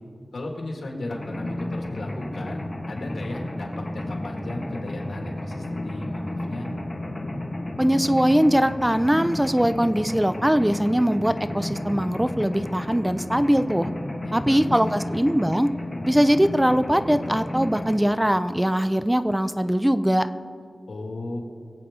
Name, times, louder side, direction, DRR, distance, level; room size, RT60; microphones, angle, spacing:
voice 1, 0.3-6.7 14.2-15.1 20.9-21.4, left 1 dB, 85° left, 0 dB, 2.0 m, -35 dB
Mechanisms, 1.1-18.0, left 1 dB, 35° left, 1.5 m, -32 dB
voice 2, 7.8-13.9 14.3-15.7 16.0-20.3, equal, 10° right, 11 dB, 0.4 m, -21 dB
22.5 x 8.3 x 3.7 m, 2.4 s
wide cardioid pair, 85°, 0 cm